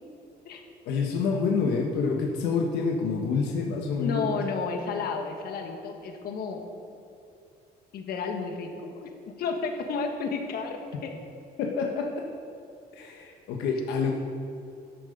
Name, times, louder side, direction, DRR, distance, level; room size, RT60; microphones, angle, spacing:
voice 1, 0.8-4.3 11.6-12.1 12.9-14.1, left 5 dB, 85° left, 1 dB, 1.1 m, -27 dB
voice 2, 4.0-6.6 7.9-11.1, left 5 dB, 65° left, 4 dB, 1.5 m, -32 dB
13.0 x 7.9 x 5.2 m, 2.6 s
cardioid pair, 110°, 17 cm